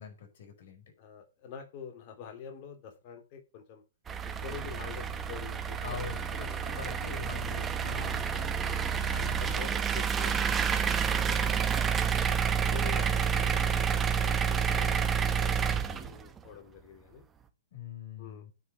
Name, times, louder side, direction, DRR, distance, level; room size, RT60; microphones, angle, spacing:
voice 1, 0.0-0.8 5.8-8.2 9.1-9.6 11.1-11.7 17.7-18.5, left 8 dB, 60° left, 4 dB, 4.5 m, -44 dB
voice 2, 1.0-3.8 4.4-6.0 6.3-6.6 8.3-8.6 9.0-10.6 11.2-12.0 12.5-17.2 18.2-18.4, left 7 dB, 40° left, 4 dB, 2.7 m, -47 dB
sound 1, 4.1-16.4, right 7 dB, 15° right, 1.0 m, -29 dB
9.5 x 5.1 x 7.7 m, 0.30 s
hypercardioid pair, 145°, 0 cm